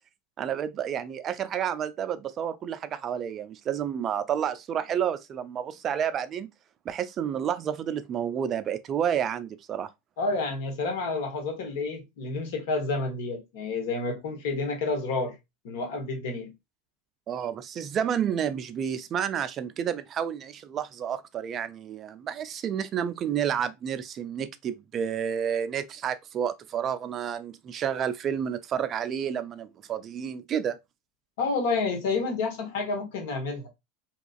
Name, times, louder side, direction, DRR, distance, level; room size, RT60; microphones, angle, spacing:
voice 1, 0.4-6.5 6.9-9.9 17.3-30.8, right 8 dB, 40° right, 0.3 m, -30 dB
voice 2, 10.2-15.3 15.6-16.5 31.4-33.7, left 3 dB, 70° left, 1.1 m, -29 dB
2.9 x 2.4 x 2.3 m
hypercardioid pair, 90°, 0 cm